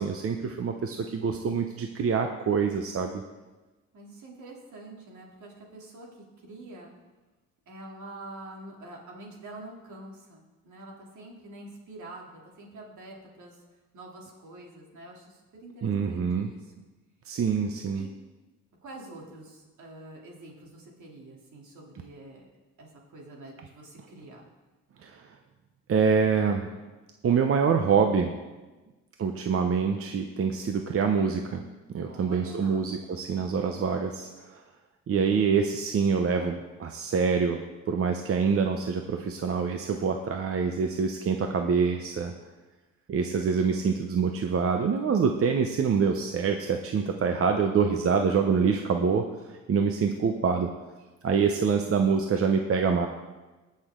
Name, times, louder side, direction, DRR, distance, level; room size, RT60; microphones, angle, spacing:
voice 1, 0.0-3.2 15.8-16.5 17.3-18.1 25.0-25.3 25.9-26.7 27.2-28.3 29.2-31.6 31.9-34.6 35.1-37.6 37.9-42.3 43.1-50.7 51.2-53.1, right 6 dB, 50° right, 4 dB, 0.9 m, -26 dB
voice 2, 3.9-6.9 7.7-13.6 13.9-16.7 17.9-18.1 18.8-22.5 22.8-24.5 32.0-32.9, right 2 dB, 75° right, -1 dB, 3.1 m, -46 dB
20.0 x 6.6 x 3.8 m, 1.2 s
cardioid pair, 90°, 30 cm